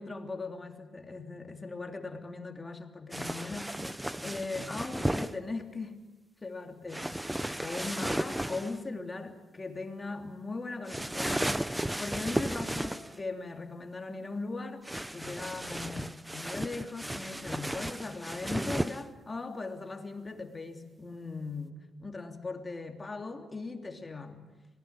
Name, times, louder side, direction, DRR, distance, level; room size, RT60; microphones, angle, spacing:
voice 1, 0.0-6.0 6.4-7.1 7.6-14.8 15.1-24.5, left 3 dB, 25° left, 4 dB, 3.2 m, -39 dB
sound 1, 3.1-5.3 6.9-8.8 10.9-13.2 14.8-19.0, right 1 dB, 5° right, 1.0 m, -34 dB
25.5 x 19.5 x 9.0 m, 1.1 s
cardioid pair, 90°, 0 cm